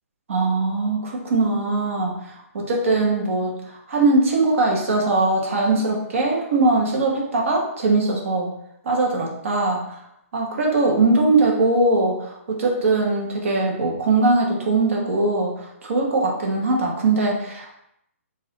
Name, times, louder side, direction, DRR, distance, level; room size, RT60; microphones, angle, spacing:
voice 1, 0.3-2.1 2.5-8.5 8.8-9.8 10.3-17.7, right 2 dB, 60° right, -1 dB, 1.2 m, -21 dB
4.0 x 2.6 x 4.0 m, 0.78 s
hypercardioid pair, 165°, 8 cm